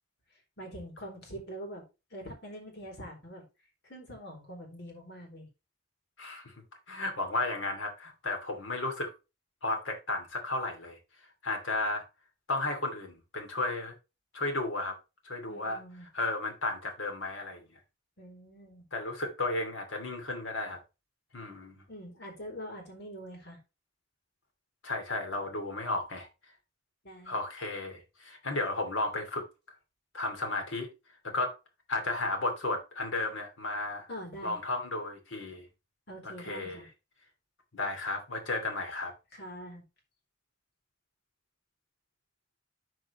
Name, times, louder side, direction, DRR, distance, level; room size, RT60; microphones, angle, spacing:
voice 1, 0.6-1.8 2.1-3.4 3.8-5.5 15.5-16.1 18.2-18.8 21.9-23.6 27.0-27.4 34.1-34.6 36.1-36.9 39.3-39.8, equal, 60° left, 3.3 m, -44 dB
voice 2, 6.2-6.5 6.9-9.1 9.6-11.0 11.4-12.0 12.5-13.9 14.3-14.9 15.2-15.8 16.1-17.6 18.9-20.8 21.3-21.8 24.8-26.3 27.3-29.4 30.1-30.9 31.2-31.5 31.9-34.1 34.4-35.6 36.4-36.8 37.7-39.1, left 2 dB, 85° left, 2.7 m, -33 dB
13.0 x 4.7 x 3.1 m
head